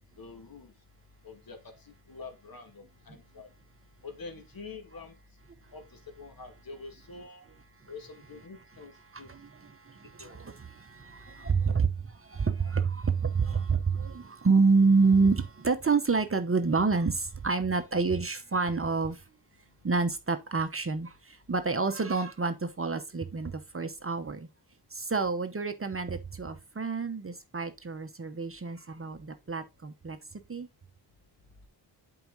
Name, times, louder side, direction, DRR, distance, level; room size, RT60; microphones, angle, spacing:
voice 1, 0.2-0.7 1.2-3.5 4.0-5.2 5.7-7.5 7.9-9.3 10.2-10.4, left 4 dB, 50° left, 2.1 m, -46 dB
voice 2, 9.1-19.3 19.8-24.5 24.9-30.7, right 4 dB, 30° right, 0.9 m, -28 dB
7.8 x 4.8 x 3.9 m
cardioid pair, 85°, 44 cm